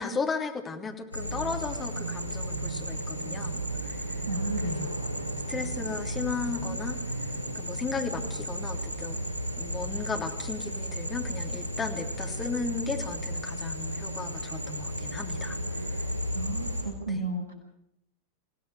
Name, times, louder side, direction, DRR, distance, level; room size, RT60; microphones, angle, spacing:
voice 1, 0.0-4.2 4.6-5.1 5.5-7.0 7.5-9.2 9.6-16.0 17.1-17.2, left 5 dB, 20° left, 4 dB, 3.3 m, -35 dB
sound 1, 1.1-16.8, right 1 dB, 85° right, 7.3 m, -34 dB
voice 2, 4.2-4.9 16.3-17.5, right 2 dB, 75° left, 4 dB, 7.5 m, -33 dB
29.0 x 17.0 x 6.9 m, 0.77 s
figure-of-eight pair, 90°, 0 cm